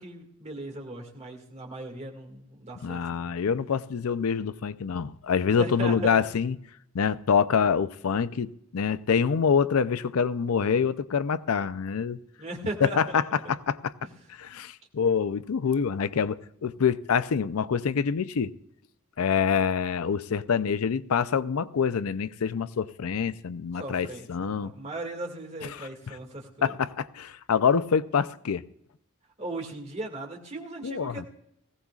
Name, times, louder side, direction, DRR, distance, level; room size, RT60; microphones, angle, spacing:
voice 1, 0.0-3.2 5.6-6.2 12.4-13.2 14.0-14.1 23.7-26.8 29.4-31.3, right 2 dB, 30° right, 2.0 m, -38 dB
voice 2, 2.8-6.5 6.9-12.2 12.8-13.2 13.5-13.9 14.4-18.5 19.2-24.7 26.6-28.6 30.8-31.3, left 6 dB, 80° left, 0.5 m, -26 dB
18.5 x 16.0 x 2.4 m
head